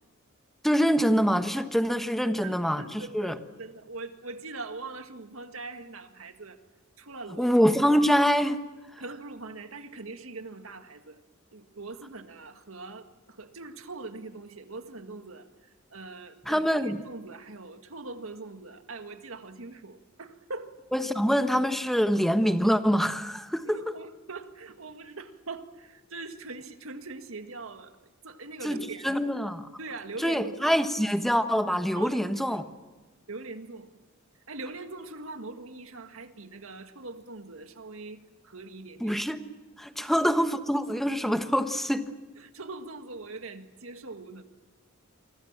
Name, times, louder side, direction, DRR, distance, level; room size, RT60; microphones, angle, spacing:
voice 1, 0.6-3.4 7.4-8.6 16.5-17.0 20.9-23.8 28.6-28.8 29.0-29.7 30.2-32.6 39.0-39.4 39.8-42.1, equal, ahead, 1.3 m, -25 dB
voice 2, 2.2-6.6 7.0-7.5 9.0-11.2 11.5-20.8 23.7-28.0 28.2-29.2 29.8-30.7 31.9-32.7 33.3-34.0 34.5-39.2 40.0-40.1 42.4-44.4, right 3 dB, 80° right, 1.9 m, -42 dB
28.5 x 24.5 x 7.4 m
head